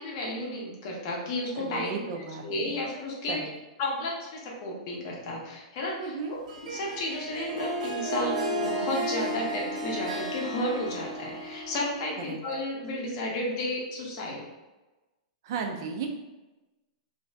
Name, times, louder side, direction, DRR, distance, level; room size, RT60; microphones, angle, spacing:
voice 1, 0.0-3.4 3.8-14.4, left 1 dB, 35° left, -2 dB, 0.7 m, -33 dB
voice 2, 1.6-2.8 3.3-3.5 6.0-6.4 12.3-12.4 15.4-16.1, right 5 dB, 40° right, 3 dB, 0.4 m, -35 dB
Harp, 6.5-12.3, right 1 dB, 80° right, 0.8 m, -33 dB
2.6 x 2.4 x 3.2 m, 1.1 s
supercardioid pair, 175°, 4 cm